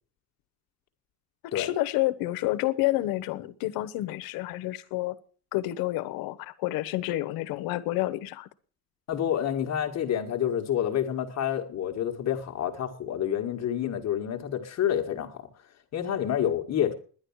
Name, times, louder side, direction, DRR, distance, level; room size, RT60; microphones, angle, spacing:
voice 1, 1.5-5.2 5.5-8.5, left 16 dB, 85° left, 1.2 m, -29 dB
voice 2, 9.1-15.4 15.9-16.9, left 10 dB, 50° left, 1.6 m, -28 dB
11.0 x 10.5 x 7.2 m
cardioid pair, 120°, 35 cm